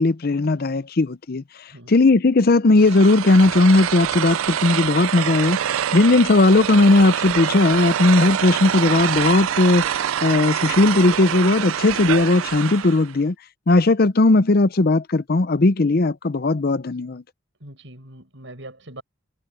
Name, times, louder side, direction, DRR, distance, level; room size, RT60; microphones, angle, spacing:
voice 1, 0.0-1.4 1.9-5.6 5.9-13.3 13.7-17.2, left 2 dB, 50° left, 0.6 m, -17 dB
sound 1, 2.8-13.1, right 9 dB, 80° right, 0.4 m, -25 dB
voice 2, 17.6-19.0, right 1 dB, 65° right, 7.6 m, -41 dB
head